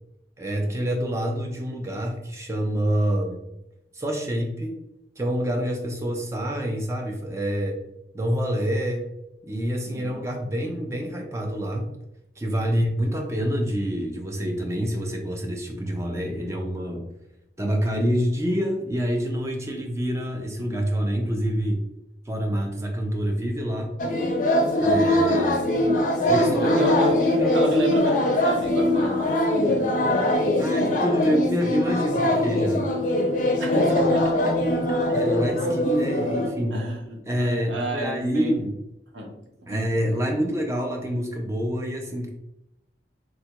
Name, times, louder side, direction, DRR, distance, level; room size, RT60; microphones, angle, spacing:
voice 1, 0.4-3.4 3.9-4.7 5.2-7.8 8.1-9.1 9.4-11.9 12.4-17.0 17.6-21.8 22.3-23.9 24.8-25.7 26.2-26.8 27.4-27.5 30.5-32.9 35.1-36.8 37.3-38.8 39.6-42.3, equal, 15° right, 2 dB, 0.4 m, -27 dB
voice 2, 9.9-10.2 12.7-12.8 26.6-27.2 27.5-29.9 33.6-34.3 36.7-38.6 39.1-39.3 39.7-39.8, equal, 85° right, 0 dB, 0.8 m, -30 dB
sound 1, 24.0-36.5, left 1 dB, 45° left, 0.5 m, -22 dB
3.5 x 2.2 x 2.8 m, 0.88 s
head